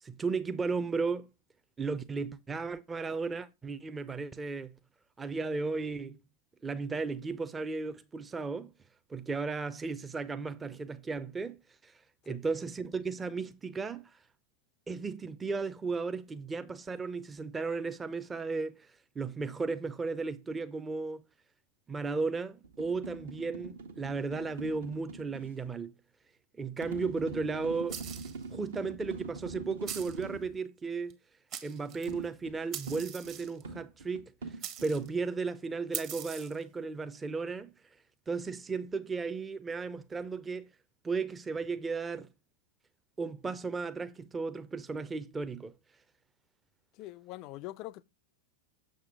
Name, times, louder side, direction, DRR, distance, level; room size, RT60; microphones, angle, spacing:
voice 1, 0.0-1.3 1.8-4.7 5.2-6.2 6.6-8.7 9.1-11.6 11.8-11.9 12.3-14.1 14.9-18.9 19.2-21.2 21.9-25.9 26.6-28.0 28.5-31.1 31.6-34.3 34.8-37.7 38.3-40.7 41.0-42.3 43.2-45.7, right 4 dB, 15° right, 0.6 m, -35 dB
sound 1, 22.6-25.5 26.8-30.5 32.1-35.1, right 4 dB, 65° right, 1.1 m, -44 dB
sound 2, 27.9-28.4 29.9-30.3 31.1-31.2 31.5-32.1 32.7-33.6 34.6-35.1 35.9-36.6, right 9 dB, 35° right, 1.1 m, -41 dB
voice 2, 46.9-48.0, left 16 dB, 40° left, 0.4 m, -43 dB
7.0 x 6.5 x 3.4 m
figure-of-eight pair, 90°, 0 cm